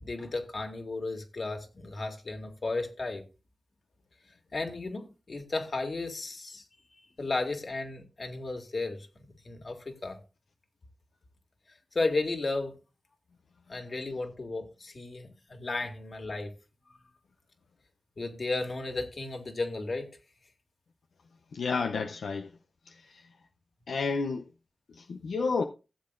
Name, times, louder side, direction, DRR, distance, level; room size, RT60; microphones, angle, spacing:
voice 1, 0.0-3.2 4.5-6.6 7.2-9.1 9.4-10.2 11.9-12.7 13.7-16.5 18.2-20.1, left 3 dB, 55° left, 2.2 m, -34 dB
voice 2, 21.5-22.5 23.9-24.4 25.0-25.6, left 4 dB, 90° left, 0.6 m, -30 dB
15.5 x 7.7 x 2.5 m
cardioid pair, 55°, 0 cm